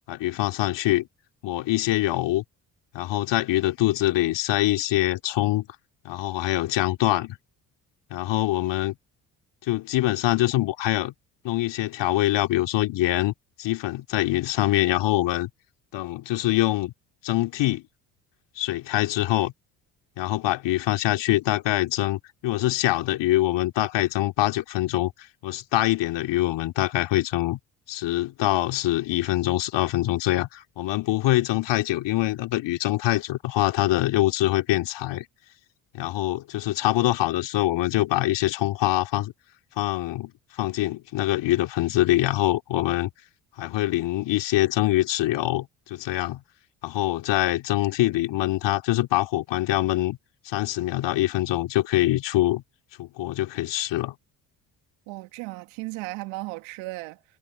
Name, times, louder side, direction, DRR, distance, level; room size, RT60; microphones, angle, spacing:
voice 1, 0.1-1.1 1.4-2.4 2.9-5.7 6.0-7.4 8.1-9.0 9.6-11.1 11.4-13.3 13.6-15.5 15.9-16.9 17.2-17.8 18.6-19.5 20.2-27.6 27.9-35.2 35.9-39.3 39.8-43.1 43.6-46.4 46.8-50.2 50.4-52.6 53.0-54.1, left 16 dB, 65° left, 2.8 m, -24 dB
voice 2, 55.1-57.2, right 23 dB, 75° right, 2.4 m, -35 dB
hypercardioid pair, 55°, 46 cm